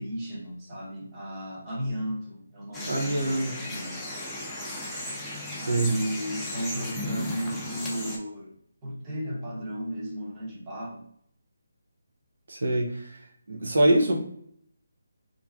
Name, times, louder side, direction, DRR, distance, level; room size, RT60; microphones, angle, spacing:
voice 1, 0.0-4.0 4.7-11.1, equal, 20° right, -5 dB, 0.9 m, -35 dB
sound 1, 2.7-8.2, left 1 dB, 5° left, 0.5 m, -36 dB
voice 2, 2.9-3.5 5.7-5.9 12.5-14.2, right 1 dB, 65° right, 0 dB, 0.6 m, -24 dB
3.2 x 2.5 x 2.3 m, 0.68 s
figure-of-eight pair, 150°, 0 cm